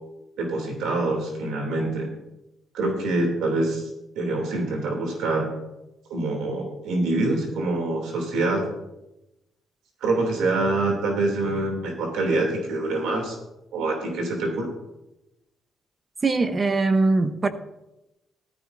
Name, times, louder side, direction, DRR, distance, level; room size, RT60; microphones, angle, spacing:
voice 1, 0.4-2.1 2.7-3.9 4.1-5.5 6.1-8.6 10.0-13.4 13.7-14.7, right 2 dB, 85° right, 2.9 m, -25 dB
voice 2, 16.2-17.5, right 3 dB, 30° right, 1.0 m, -21 dB
14.0 x 14.0 x 2.7 m
cardioid pair, 90°, 0 cm